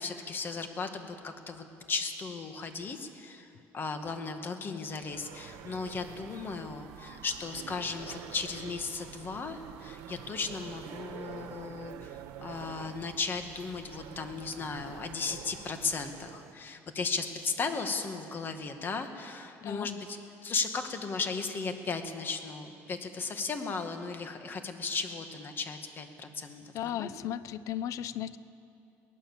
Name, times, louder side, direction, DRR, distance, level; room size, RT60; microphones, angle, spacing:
voice 1, 0.0-3.5 3.7-20.2 20.4-27.1, left 4 dB, 35° left, 6 dB, 2.0 m, -36 dB
sound 1, 4.9-16.5, right 10 dB, 85° right, 1.3 m, -47 dB
voice 2, 26.7-28.4, left 11 dB, 65° left, 16 dB, 0.7 m, -35 dB
23.5 x 18.0 x 7.4 m, 2.6 s
cardioid pair, 110°, 6 cm